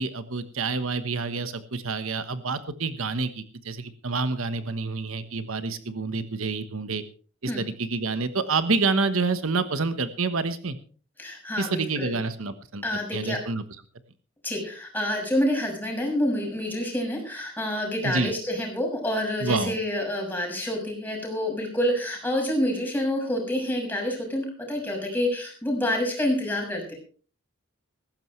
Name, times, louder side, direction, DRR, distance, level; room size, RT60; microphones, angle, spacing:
voice 1, 0.0-7.0 7.4-10.8 11.6-12.8 13.1-13.6 18.0-18.3 19.4-19.7, right 4 dB, 80° right, 11 dB, 1.2 m, -28 dB
voice 2, 11.2-12.2 12.8-13.4 14.4-26.9, left 1 dB, 10° left, 0 dB, 6.7 m, -28 dB
18.0 x 15.5 x 3.3 m, 0.39 s
head